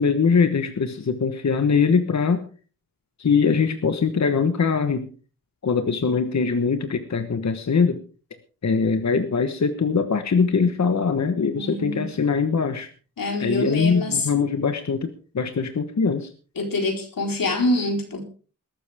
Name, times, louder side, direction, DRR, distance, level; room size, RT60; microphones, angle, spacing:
voice 1, 0.0-2.4 3.2-5.1 5.6-8.0 8.6-12.9 13.4-15.1 15.3-16.3, left 5 dB, 55° left, 8 dB, 1.3 m, -22 dB
voice 2, 11.5-12.1 13.2-14.3 16.6-18.2, left 2 dB, 90° left, 2 dB, 4.3 m, -25 dB
21.0 x 13.0 x 3.6 m, 0.38 s
wide cardioid pair, 125°, 33 cm